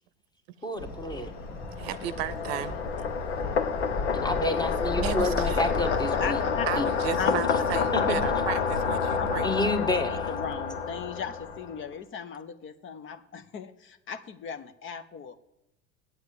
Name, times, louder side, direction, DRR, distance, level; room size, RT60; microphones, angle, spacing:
voice 1, 0.6-1.3 4.1-6.4 6.8-6.9 7.9-8.2 9.4-10.2, left 2 dB, 10° left, 8 dB, 1.2 m, -29 dB
sound 1, 0.8-8.4, left 2 dB, 55° left, 2.4 m, -36 dB
sound 2, 1.2-11.8, left 6 dB, 80° left, 1.0 m, -29 dB
voice 2, 1.8-2.8 5.0-5.8 6.7-9.5, right 13 dB, 65° right, 14 dB, 0.7 m, -34 dB
voice 3, 6.2-6.7 7.2-7.5 9.2-9.3 9.8-15.4, left 7 dB, 35° left, 11 dB, 0.8 m, -37 dB
8.8 x 7.9 x 8.4 m, 0.89 s
hypercardioid pair, 75°, 34 cm